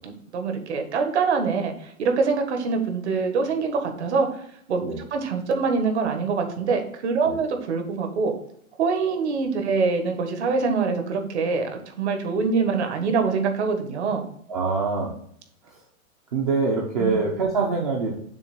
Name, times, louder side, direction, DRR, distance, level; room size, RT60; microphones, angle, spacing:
voice 1, 0.0-4.3 4.7-8.3 8.8-14.2 17.0-17.2, right 4 dB, 55° right, 5 dB, 1.5 m, -24 dB
voice 2, 14.5-15.1 15.6-15.8 16.3-18.1, right 4 dB, 25° right, -1 dB, 0.7 m, -24 dB
7.1 x 3.1 x 6.0 m, 0.67 s
hypercardioid pair, 170°, 42 cm